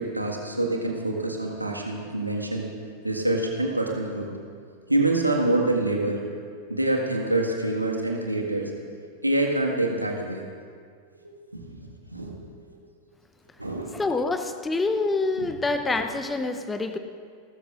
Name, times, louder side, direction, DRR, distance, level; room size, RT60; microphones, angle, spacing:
voice 1, 0.0-2.7 3.0-4.3 4.9-6.2 6.7-8.7 9.2-10.4 11.2-12.3 13.6-14.0 15.4-15.5, right 2 dB, 85° right, 0 dB, 1.8 m, -26 dB
voice 2, 13.9-17.0, left 3 dB, 10° left, 8 dB, 0.8 m, -26 dB
29.5 x 13.5 x 2.6 m, 2.1 s
figure-of-eight pair, 90°, 0 cm